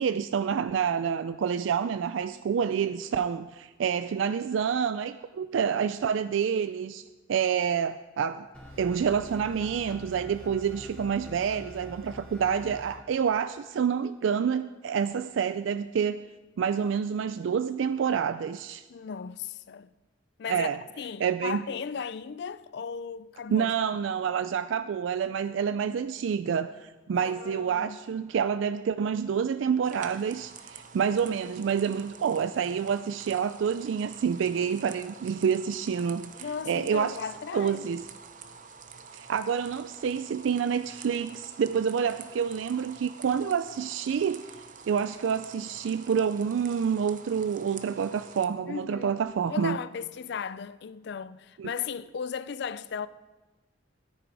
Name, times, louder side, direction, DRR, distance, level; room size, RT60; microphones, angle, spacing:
voice 1, 0.0-7.0 7.3-8.5 8.8-16.2 16.6-18.8 20.5-20.8 21.2-21.6 23.5-36.3 36.7-37.2 37.5-38.0 39.1-44.4 44.9-49.8 51.6-51.7, right 7 dB, 75° right, 0.3 m, -28 dB
sound 1, 8.5-12.9, left 1 dB, 5° left, 2.5 m, -45 dB
voice 2, 18.9-19.9 20.4-20.7 21.0-23.7 27.1-28.0 36.3-37.9 48.7-49.2 49.5-53.1, left 6 dB, 60° left, 0.4 m, -36 dB
sound 2, 29.8-48.5, right 5 dB, 40° right, 0.8 m, -48 dB
14.0 x 10.5 x 4.7 m
head